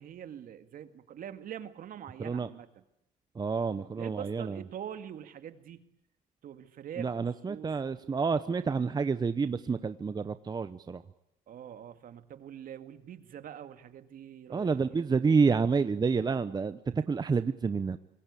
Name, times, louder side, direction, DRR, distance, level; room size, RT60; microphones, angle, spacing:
voice 1, 0.0-2.8 4.0-5.8 6.4-7.7 11.5-15.0, right 9 dB, 55° right, 9 dB, 2.2 m, -44 dB
voice 2, 3.3-4.6 7.0-11.0 14.5-18.0, right 5 dB, 25° right, 12 dB, 0.9 m, -29 dB
26.0 x 22.0 x 8.5 m, 0.85 s
cardioid pair, 110°, 17 cm